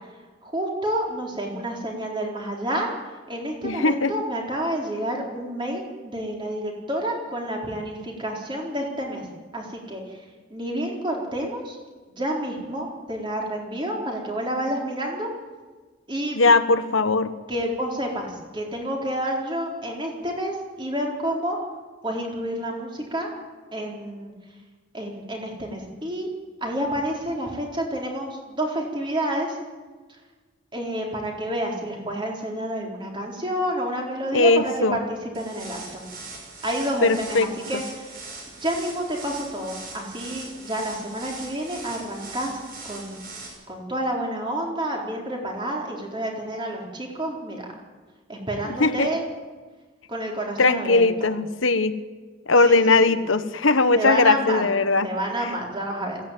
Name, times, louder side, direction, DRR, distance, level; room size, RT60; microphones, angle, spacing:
voice 1, 0.4-2.9 3.3-9.3 9.5-10.2 10.5-11.8 12.1-15.3 16.1-16.4 17.5-21.6 22.0-23.3 23.7-24.3 24.9-26.3 26.6-29.6 30.7-36.0 36.6-38.2 38.6-42.6 42.8-43.2 43.7-47.7 48.3-49.2 50.1-51.3 52.6-52.8 53.1-53.2 53.9-54.6 55.0-56.2, right 1 dB, 25° right, 0 dB, 4.2 m, -29 dB
voice 2, 3.6-4.1 16.4-17.3 34.3-35.0 37.0-37.5 48.8-49.1 50.6-52.0 52.5-55.1, left 3 dB, 85° left, 11 dB, 1.1 m, -19 dB
sound 1, 35.3-43.5, right 3 dB, 50° right, 6.6 m, -40 dB
21.0 x 16.0 x 9.2 m, 1.4 s
head